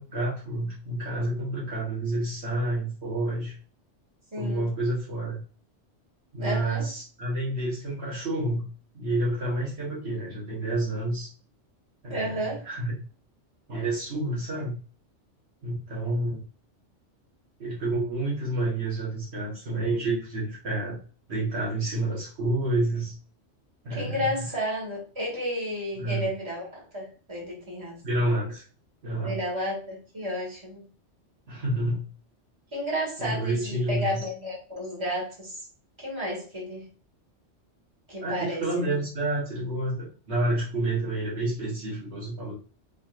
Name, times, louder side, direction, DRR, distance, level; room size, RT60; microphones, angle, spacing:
voice 1, 0.0-3.5 4.4-5.4 6.3-8.6 8.9-11.3 12.0-13.0 13.7-14.8 15.6-16.4 17.6-21.0 21.3-23.2 23.8-24.3 26.0-26.3 28.0-28.6 29.0-29.4 31.5-32.1 33.2-34.2 38.2-42.5, right 2 dB, 60° right, -5 dB, 1.4 m, -29 dB
voice 2, 4.3-4.7 6.4-6.9 12.1-12.6 23.9-28.0 29.2-30.8 32.7-35.6 36.0-36.9 38.1-38.6, equal, 25° right, -3 dB, 1.7 m, -32 dB
4.9 x 3.0 x 2.4 m, 0.38 s
omnidirectional pair, 1.2 m